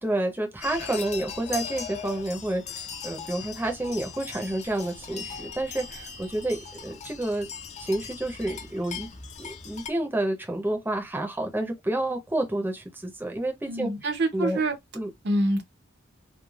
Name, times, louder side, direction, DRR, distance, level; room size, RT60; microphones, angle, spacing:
voice 1, 0.0-7.5 7.8-9.1 9.4-13.9 14.3-14.6 14.9-15.1, right 1 dB, 10° right, 0.7 m, -29 dB
sound 1, 0.6-9.9, left 6 dB, 35° left, 0.6 m, -39 dB
voice 2, 13.7-14.7 15.2-15.6, right 1 dB, 60° right, 0.7 m, -25 dB
3.2 x 2.3 x 2.3 m
head